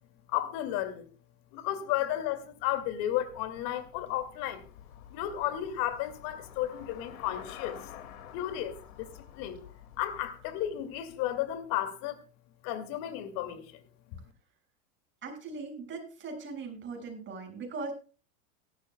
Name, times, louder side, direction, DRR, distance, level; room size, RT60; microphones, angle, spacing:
voice 1, 0.3-1.1 1.5-4.6 5.1-7.8 8.3-9.7 10.0-12.2 12.6-13.8, left 12 dB, 55° left, 2.5 m, -33 dB
Traffic noise roadway noise / Bicycle, 2.5-11.7, left 10 dB, 70° left, 2.5 m, -50 dB
voice 2, 15.2-17.9, right 4 dB, 25° right, 6.7 m, -39 dB
17.5 x 13.0 x 2.3 m
supercardioid pair, 120°, 41 cm